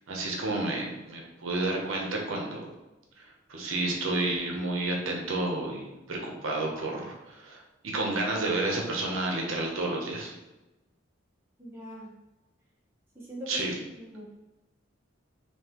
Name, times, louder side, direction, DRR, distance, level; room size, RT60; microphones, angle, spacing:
voice 1, 0.1-2.7 3.2-10.3 13.5-13.7, right 2 dB, 85° right, 0 dB, 0.7 m, -31 dB
voice 2, 11.6-12.1 13.1-13.6 14.0-14.2, equal, 10° right, -6 dB, 0.9 m, -41 dB
3.6 x 2.9 x 2.9 m, 1.0 s
head